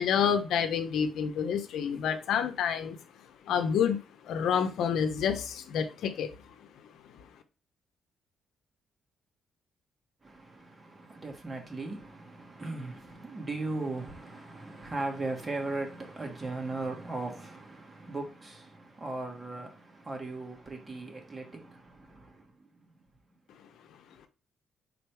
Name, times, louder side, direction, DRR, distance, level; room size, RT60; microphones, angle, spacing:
voice 1, 0.0-3.0 3.5-4.0 4.2-6.3, left 7 dB, 80° left, 0.9 m, -28 dB
voice 2, 10.2-22.5, right 2 dB, 25° right, 2.0 m, -38 dB
5.2 x 4.2 x 4.7 m
cardioid pair, 90°, 0 cm